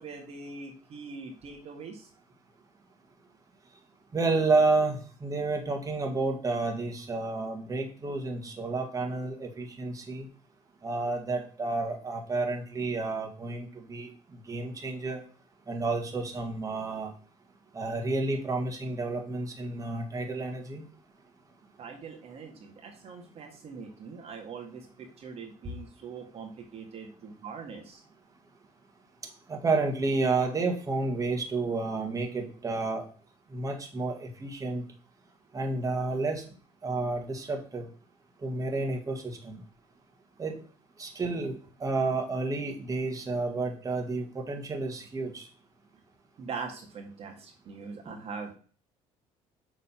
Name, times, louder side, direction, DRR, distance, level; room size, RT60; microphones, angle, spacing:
voice 1, 0.0-2.1 21.8-28.0 46.4-48.6, right 5 dB, 50° right, 2 dB, 1.7 m, -42 dB
voice 2, 4.1-10.3 10.8-14.1 14.5-15.2 15.7-17.1 17.7-20.8 29.5-33.1 33.5-34.8 35.5-36.4 36.8-37.9 38.4-39.6 40.4-40.6 41.0-45.5 48.1-48.2, right 3 dB, 25° right, 2 dB, 1.8 m, -30 dB
6.8 x 4.0 x 5.7 m, 0.39 s
cardioid pair, 95°, 13 cm